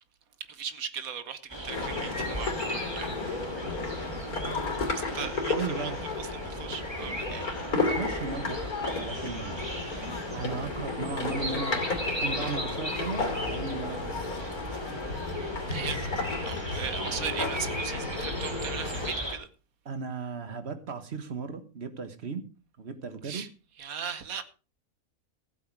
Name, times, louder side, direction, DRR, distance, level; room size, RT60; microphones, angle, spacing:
voice 1, 0.5-3.5 4.9-7.7 9.2-9.4 15.7-16.1 16.4-19.5 23.2-23.5 23.8-24.4, right 7 dB, 75° right, 1.5 m, -38 dB
sound 1, 1.5-19.4, right 1 dB, 15° right, 2.4 m, -37 dB
sound 2, 1.7-19.1, left 3 dB, 85° left, 3.2 m, -33 dB
voice 2, 5.5-6.0 7.8-9.7 10.3-14.4 19.8-22.5 22.8-23.4, right 4 dB, 50° right, 1.6 m, -36 dB
15.0 x 8.3 x 4.7 m
omnidirectional pair, 1.5 m